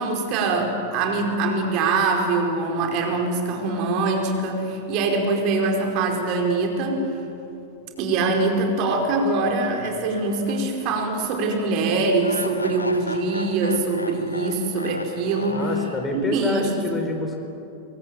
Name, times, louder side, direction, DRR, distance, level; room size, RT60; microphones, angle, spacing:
voice 1, 0.0-7.0 8.0-15.6 16.1-16.7, right 3 dB, 40° right, 2 dB, 4.9 m, -23 dB
sound 1, 9.6-10.9 11.2-11.3 12.2-16.5, left 2 dB, 80° left, 1.3 m, -36 dB
voice 2, 15.5-17.4, left 1 dB, 15° left, 4 dB, 4.2 m, -27 dB
27.0 x 23.5 x 8.9 m, 2.8 s
figure-of-eight pair, 90°, 0 cm